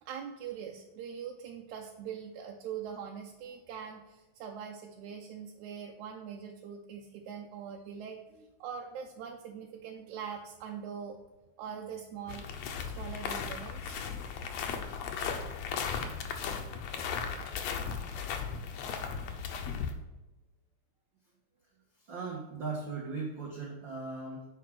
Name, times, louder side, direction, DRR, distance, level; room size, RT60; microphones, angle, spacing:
voice 1, 0.0-11.2 11.6-12.5 13.0-14.0, right 7 dB, 75° right, 1 dB, 2.0 m, -42 dB
sound 1, 12.3-19.9, left 6 dB, 70° left, 1.9 m, -36 dB
voice 2, 21.9-24.5, right 4 dB, 50° right, -2 dB, 1.6 m, -38 dB
9.6 x 5.1 x 6.0 m, 1.1 s
omnidirectional pair, 3.6 m